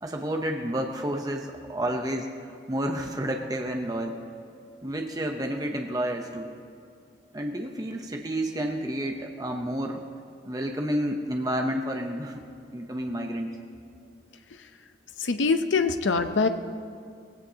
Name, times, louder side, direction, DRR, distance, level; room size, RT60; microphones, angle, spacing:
voice 1, 0.0-4.2 4.8-6.5 7.3-10.0 10.4-12.5 12.7-13.5, right 1 dB, 20° right, 3 dB, 0.7 m, -30 dB
voice 2, 15.2-16.5, left 4 dB, 90° left, 8 dB, 0.7 m, -23 dB
18.5 x 16.5 x 2.8 m, 2.4 s
head